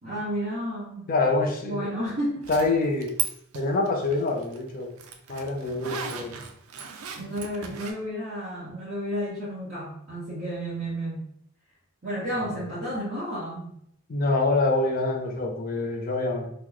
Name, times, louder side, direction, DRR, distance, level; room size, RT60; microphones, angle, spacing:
voice 1, 0.0-1.1 1.6-2.5 7.2-11.2 12.0-13.7, equal, 35° right, -10 dB, 0.9 m, -32 dB
voice 2, 1.1-1.9 2.5-3.2 3.5-5.0 5.3-6.4 12.4-12.6 14.1-16.5, left 2 dB, 40° left, 2 dB, 0.4 m, -26 dB
Zipper (clothing), 2.4-3.3 3.5-7.9, right 7 dB, 75° right, 0.4 m, -35 dB
3.0 x 2.0 x 3.7 m, 0.71 s
head